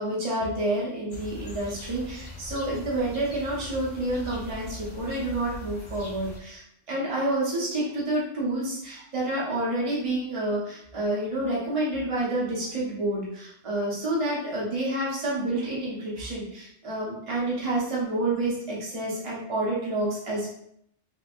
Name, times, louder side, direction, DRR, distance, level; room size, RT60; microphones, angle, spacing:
voice 1, 0.0-6.6 6.9-20.5, right 1 dB, 30° right, -6 dB, 1.0 m, -29 dB
sound 1, 1.1-6.4, left 1 dB, 45° left, 0.4 m, -40 dB
3.6 x 3.3 x 2.6 m, 0.69 s
omnidirectional pair, 1.2 m